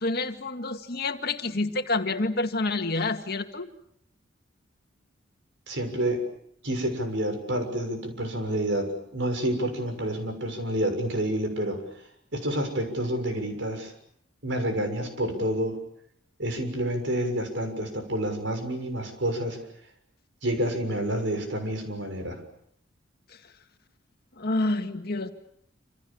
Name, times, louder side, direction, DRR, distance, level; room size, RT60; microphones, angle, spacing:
voice 1, 0.0-3.7 24.4-25.3, left 2 dB, 55° left, 6 dB, 2.1 m, -28 dB
voice 2, 5.7-6.2 6.6-11.8 12.3-13.9 14.4-15.8 16.4-19.6 20.4-22.4, right 1 dB, 70° right, 6 dB, 6.6 m, -28 dB
28.0 x 27.5 x 7.2 m, 0.71 s
head